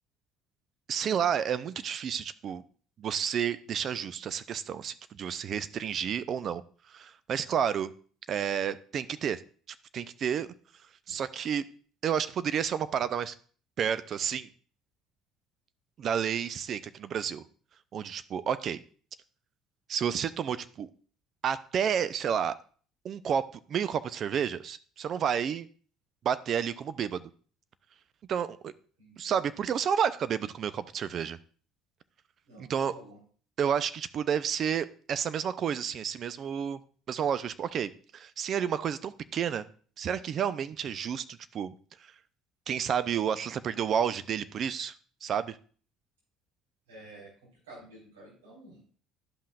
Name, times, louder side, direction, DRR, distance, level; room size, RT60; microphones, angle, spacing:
voice 1, 0.9-2.6 3.0-6.6 6.9-7.9 8.3-9.4 9.9-10.5 11.1-11.7 12.0-13.3 13.8-14.5 16.0-17.4 17.9-18.8 19.9-20.9 21.4-22.6 23.0-25.7 26.2-27.3 28.3-28.7 29.2-31.4 32.6-32.9 33.6-36.8 37.1-39.7 40.0-41.7 42.7-44.9 45.2-45.6, right 8 dB, 50° right, 14 dB, 0.5 m, -30 dB
voice 2, 29.0-29.3 32.5-33.2 46.9-47.3 47.6-49.0, right 1 dB, 90° right, -6 dB, 4.0 m, -50 dB
12.0 x 5.6 x 2.4 m, 0.43 s
hypercardioid pair, 65°, 0 cm